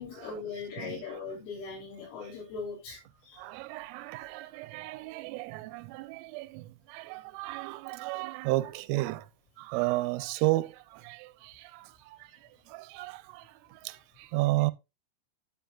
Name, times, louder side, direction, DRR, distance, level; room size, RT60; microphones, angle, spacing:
voice 1, 0.0-3.4, left 5 dB, 80° left, 5.5 m, -40 dB
voice 2, 0.8-1.2 3.4-9.3 9.6-14.7, right 20 dB, 90° right, 3.2 m, -33 dB
10.5 x 8.8 x 2.3 m
omnidirectional pair, 5.7 m